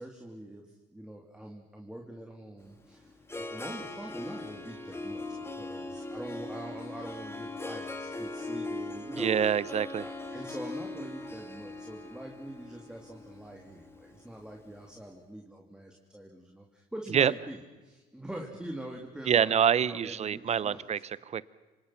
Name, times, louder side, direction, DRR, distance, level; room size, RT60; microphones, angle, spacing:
voice 1, 0.0-9.4 9.9-20.9, right 1 dB, 5° right, 0 dB, 3.1 m, -44 dB
Harp, 2.6-14.8, left 2 dB, 15° left, 2.4 m, -40 dB
voice 2, 9.1-10.0 17.1-17.3 19.3-21.5, right 8 dB, 40° right, 19 dB, 0.8 m, -26 dB
27.0 x 25.5 x 6.0 m, 1.3 s
cardioid pair, 110°, 17 cm